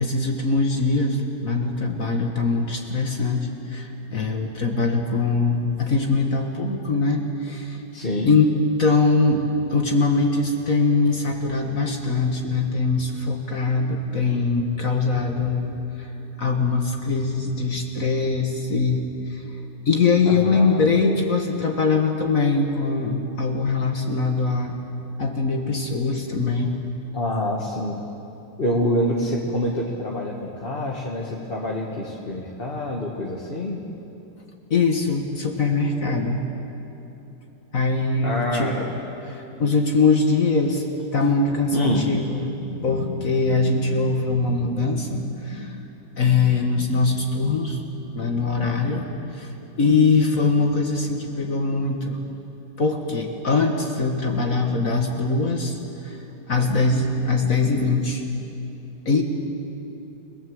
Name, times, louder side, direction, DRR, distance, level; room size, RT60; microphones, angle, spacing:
voice 1, 0.0-7.8 8.3-8.5 8.8-16.1 16.4-19.4 19.9-24.8 25.2-26.7 34.7-36.4 37.7-38.9 39.3-40.9 41.1-45.8 46.2-47.8 48.1-49.1 49.3-49.5 49.8-52.2 52.8-56.2 56.5-58.2 59.1-59.2, left 3 dB, 50° left, 2 dB, 2.0 m, -22 dB
voice 2, 7.9-8.4 20.3-20.8 27.1-28.0 28.6-33.8 38.2-38.8 41.7-42.0, left 1 dB, 30° left, -2 dB, 1.9 m, -26 dB
29.5 x 19.0 x 7.9 m, 2.9 s
omnidirectional pair, 2.0 m